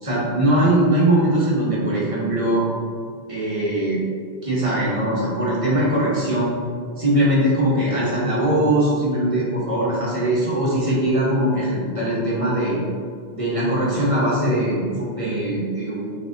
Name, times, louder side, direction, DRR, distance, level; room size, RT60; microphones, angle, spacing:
voice 1, 0.0-2.6 3.3-4.0 4.4-6.5 7.0-12.8 13.3-16.2, right 1 dB, 35° right, -7 dB, 0.9 m, -21 dB
3.9 x 3.5 x 2.6 m, 2.2 s
omnidirectional pair, 1.0 m